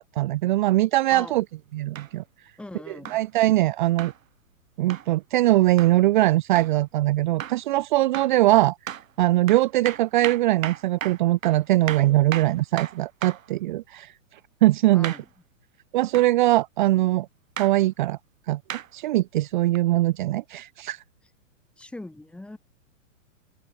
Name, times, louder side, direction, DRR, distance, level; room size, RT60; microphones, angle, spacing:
voice 1, 0.2-1.4 1.7-2.2 2.9-4.1 4.8-8.8 9.2-15.1 15.9-17.3 17.6-18.2 18.5-18.6 18.9-21.0, right 16 dB, 40° right, 0.8 m, -21 dB
sound 1, 1.9-2.1 3.0-3.2 4.0-4.2 4.9-5.1 5.8-6.0 6.5-6.7 7.4-7.6 8.1-8.4 8.9-9.1 9.5-13.5 15.0-15.3 16.1-16.3 17.6-17.7 18.7-18.9 19.7-19.8, right 10 dB, 85° right, 1.8 m, -35 dB
voice 2, 2.6-3.2 14.9-15.2 21.8-22.6, left 2 dB, 5° left, 5.9 m, -40 dB
open air
hypercardioid pair, 165°, 39 cm